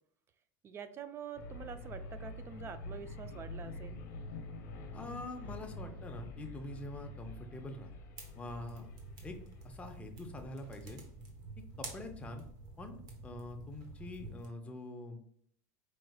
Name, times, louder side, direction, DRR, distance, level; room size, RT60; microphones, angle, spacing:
voice 1, 0.6-4.0, right 7 dB, 30° right, 11 dB, 0.4 m, -46 dB
sound 1, 1.4-11.3, left 2 dB, 80° left, 0.7 m, -47 dB
voice 2, 4.9-7.9 8.3-8.9 9.2-9.4 9.6-11.0 11.8-12.5 12.8-15.2, left 2 dB, 15° left, 4 dB, 0.6 m, -45 dB
sound 2, 8.2-14.5, right 3 dB, 45° right, 1.0 m, -49 dB
4.7 x 3.2 x 2.3 m, 0.64 s
supercardioid pair, 125°, 9 cm